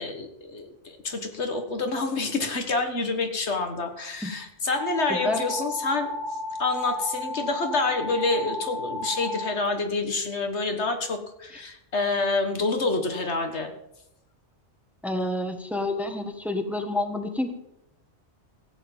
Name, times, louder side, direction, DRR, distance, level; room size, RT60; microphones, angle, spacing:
voice 1, 0.0-6.1 6.6-13.7, left 3 dB, 70° left, 6 dB, 1.8 m, -27 dB
sound 1, 4.7-9.5, left 1 dB, 70° right, 2.4 m, -33 dB
voice 2, 5.1-5.5 15.0-17.5, left 2 dB, ahead, 6 dB, 1.4 m, -28 dB
15.0 x 8.5 x 7.3 m, 0.83 s
omnidirectional pair, 1.2 m